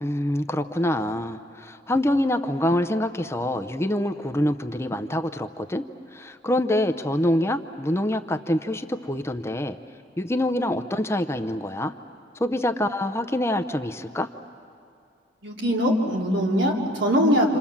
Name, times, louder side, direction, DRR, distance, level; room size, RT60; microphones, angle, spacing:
voice 1, 0.0-5.8 6.1-9.8 10.2-11.9 12.4-14.3, left 1 dB, 15° left, 8 dB, 0.6 m, -25 dB
voice 2, 15.4-17.6, equal, 80° right, -2 dB, 3.6 m, -22 dB
28.0 x 28.0 x 7.3 m, 2.4 s
head